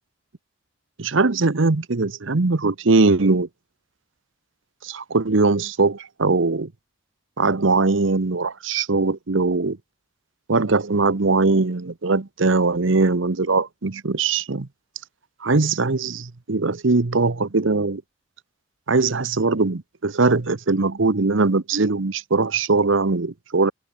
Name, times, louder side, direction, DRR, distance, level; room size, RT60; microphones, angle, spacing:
voice 1, 1.0-3.5 4.8-6.7 7.4-9.8 10.5-14.7 15.4-18.0 18.9-23.7, right 3 dB, 70° right, 0.9 m, -21 dB
head